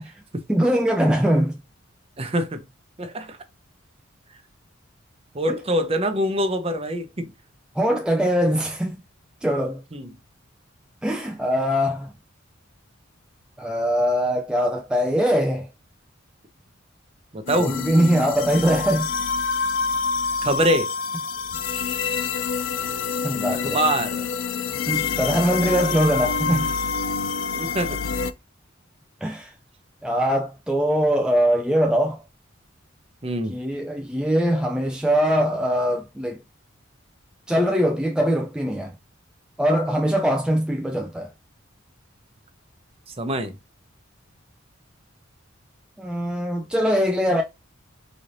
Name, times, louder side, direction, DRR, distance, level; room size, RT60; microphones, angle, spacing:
voice 1, 0.5-1.6 5.5-5.6 7.8-9.0 9.4-9.8 11.0-12.1 13.6-15.7 17.5-19.1 23.2-23.8 24.9-26.7 29.2-29.5 30.0-32.2 33.5-36.4 37.5-39.0 39.6-41.3 46.0-47.4, equal, 5° right, 0.3 m, -22 dB
voice 2, 2.2-2.6 3.0-3.4 5.3-7.3 9.9-10.1 17.3-17.7 20.4-20.9 23.6-24.3 25.0-25.2 27.5-28.0 33.2-33.6 43.2-43.5, right 1 dB, 30° right, 0.7 m, -24 dB
sound 1, 17.5-28.3, left 5 dB, 65° left, 0.4 m, -27 dB
4.0 x 3.2 x 2.6 m
head